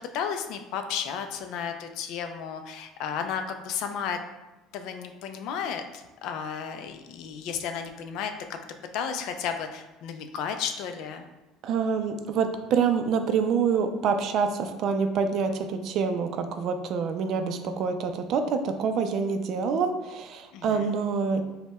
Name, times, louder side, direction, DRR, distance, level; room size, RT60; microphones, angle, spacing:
voice 1, 0.1-4.2 4.7-8.3 8.9-11.3 20.5-20.9, left 7 dB, 70° left, 7 dB, 0.4 m, -33 dB
voice 2, 11.6-21.4, right 5 dB, 55° right, 7 dB, 0.4 m, -26 dB
5.4 x 2.1 x 2.3 m, 1.1 s
supercardioid pair, 100°, 0 cm